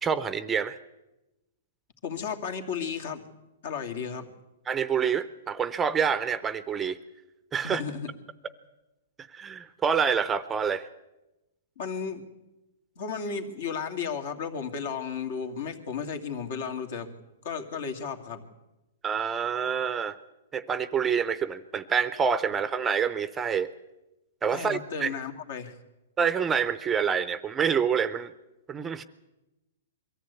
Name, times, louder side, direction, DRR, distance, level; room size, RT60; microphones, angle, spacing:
voice 1, 0.0-0.8 4.7-7.0 7.5-7.8 9.3-10.9 19.0-20.2 20.5-23.7 24.4-25.1 26.2-28.3 28.7-29.0, right 7 dB, 15° right, 14 dB, 0.6 m, -27 dB
voice 2, 2.0-3.2 3.6-4.3 7.6-8.1 11.8-12.2 13.0-17.1 17.4-18.4 24.5-25.8, left 6 dB, 60° left, 5 dB, 2.5 m, -34 dB
22.5 x 14.0 x 8.4 m, 1.0 s
hypercardioid pair, 150°, 0 cm